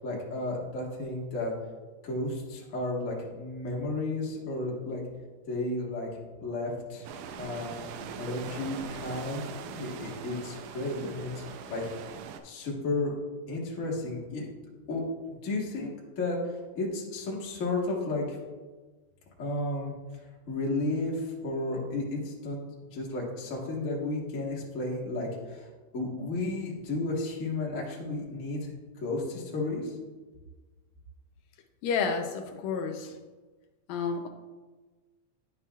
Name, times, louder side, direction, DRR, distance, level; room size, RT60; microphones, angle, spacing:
voice 1, 0.0-1.5 2.0-5.0 5.5-6.1 6.4-7.1 7.3-7.7 8.2-11.9 12.4-13.1 13.5-14.5 14.9-18.4 19.4-19.9 20.5-22.6 22.9-25.7 25.9-30.0, left 2 dB, 45° left, -3 dB, 0.9 m, -33 dB
sound 1, 7.0-12.4, right 6 dB, 85° right, 2.0 m, -41 dB
voice 2, 31.8-33.2 33.9-34.3, left 5 dB, 80° left, 4 dB, 1.7 m, -30 dB
9.8 x 5.9 x 2.3 m, 1.3 s
omnidirectional pair, 3.3 m